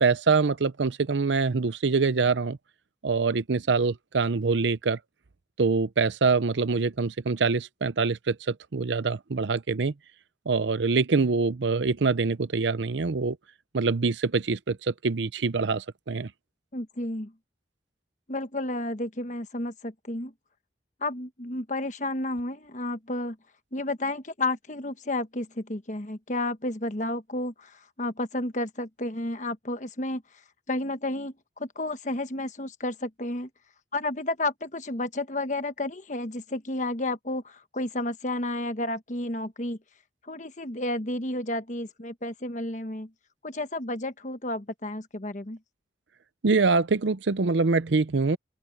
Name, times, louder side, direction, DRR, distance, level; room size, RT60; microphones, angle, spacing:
voice 1, 0.0-2.6 3.0-5.0 5.6-9.9 10.5-13.4 13.7-16.3 46.4-48.4, right 4 dB, 80° right, 0.7 m, -25 dB
voice 2, 16.7-17.3 18.3-20.3 21.0-23.4 23.7-30.2 30.7-33.5 33.9-39.8 40.3-43.1 43.4-45.6, left 2 dB, 40° left, 1.3 m, -31 dB
open air
head